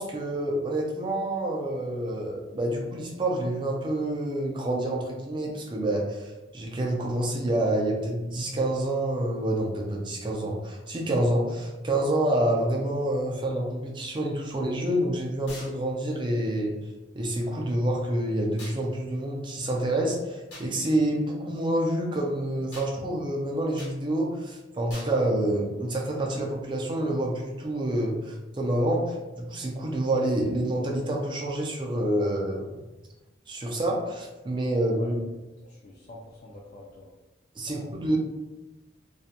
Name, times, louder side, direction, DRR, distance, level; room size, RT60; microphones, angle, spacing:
voice 1, 0.0-16.7 17.1-32.7 33.5-35.1 37.6-38.2, right 1 dB, 25° right, -1 dB, 0.4 m, -28 dB
sound 1, 15.5-15.8 18.6-18.8 20.5-20.7 22.7-22.9 23.8-24.0 24.9-25.2, left 1 dB, 75° left, 1.1 m, -43 dB
voice 2, 35.6-37.1 37.7-38.2, left 1 dB, 45° left, -4 dB, 0.4 m, -46 dB
2.3 x 2.1 x 2.7 m, 1.1 s
head